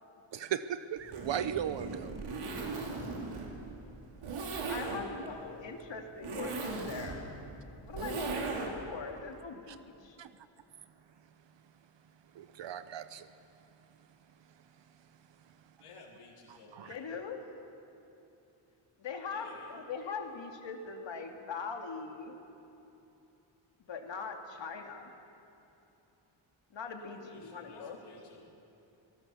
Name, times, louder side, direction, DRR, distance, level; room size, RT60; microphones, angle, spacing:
voice 1, 0.3-2.2 9.7-9.8 10.2-10.3 12.3-13.3 16.7-16.9, right 9 dB, 60° right, 13 dB, 0.8 m, -37 dB
Zipper (clothing), 1.0-8.9, right 3 dB, 85° right, 3.5 m, -38 dB
voice 2, 4.7-7.3 7.8-10.2 16.8-17.4 19.0-22.4 23.8-25.1 26.7-28.0, left 5 dB, 60° left, 3 dB, 2.6 m, -41 dB
voice 3, 15.8-17.1 19.3-19.7 20.0-20.3 27.0-28.4, left 3 dB, 85° left, -1 dB, 3.9 m, -54 dB
25.5 x 19.0 x 6.9 m, 2.9 s
wide cardioid pair, 125°, 50 cm